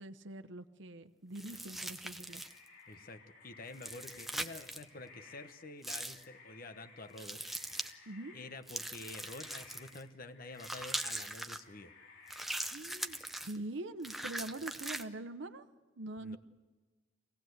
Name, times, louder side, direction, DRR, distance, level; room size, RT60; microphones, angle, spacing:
voice 1, 0.0-2.4 8.1-8.3 12.7-15.7 16.0-16.4, right 2 dB, 70° right, 9 dB, 0.9 m, -44 dB
sound 1, 1.3-2.7 3.7-4.8 5.8-6.2 7.2-7.9 8.7-10.0 10.6-11.6 12.3-13.6 14.0-15.0, right 1 dB, ahead, 0.7 m, -41 dB
sound 2, 2.3-13.4, left 4 dB, 85° left, 3.3 m, -58 dB
voice 2, 2.9-7.4 8.3-11.9 16.2-16.4, left 2 dB, 50° left, 10 dB, 1.0 m, -49 dB
25.0 x 18.0 x 8.0 m, 1.3 s
head